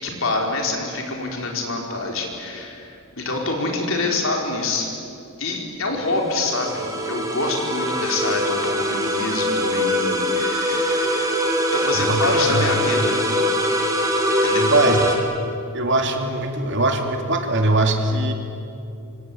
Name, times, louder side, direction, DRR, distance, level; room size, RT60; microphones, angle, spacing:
voice 1, 0.0-4.9 5.4-11.3 11.7-13.5 14.4-14.7, left 2 dB, 60° left, 1 dB, 4.9 m, -26 dB
sound 1, 6.1-15.2, equal, 15° right, 3.4 m, -22 dB
voice 2, 12.0-12.7 14.6-15.0 15.7-18.3, right 2 dB, 55° right, 4 dB, 2.9 m, -21 dB
26.0 x 25.5 x 8.8 m, 2.6 s
head